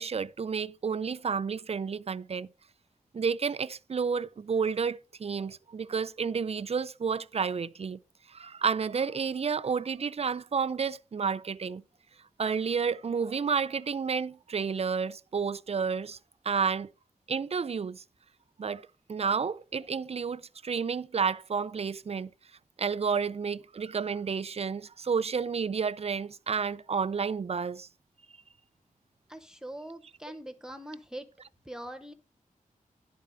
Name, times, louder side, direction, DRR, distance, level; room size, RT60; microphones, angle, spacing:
voice 1, 0.0-2.5 3.1-8.0 8.3-11.8 12.4-16.2 16.4-16.9 17.3-18.0 18.6-22.3 22.8-27.9, right 6 dB, 45° right, 0.5 m, -31 dB
voice 2, 29.3-31.3 31.6-32.1, right 1 dB, 5° right, 0.8 m, -42 dB
11.5 x 4.1 x 6.9 m
wide cardioid pair, 100°, 14 cm